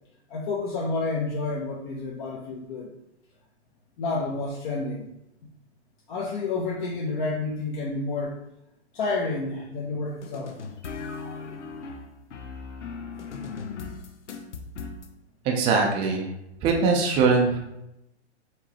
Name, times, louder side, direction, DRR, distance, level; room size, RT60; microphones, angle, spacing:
voice 1, 0.3-2.9 4.0-5.0 6.1-8.4 8.9-10.5, left 3 dB, 45° left, -3 dB, 0.9 m, -29 dB
sound 1, 10.2-15.1, left 5 dB, 85° left, 0.7 m, -38 dB
voice 2, 15.4-16.3 16.6-17.6, right 4 dB, 15° right, 0 dB, 0.5 m, -22 dB
4.8 x 2.9 x 2.9 m, 0.84 s
hypercardioid pair, 130°, 34 cm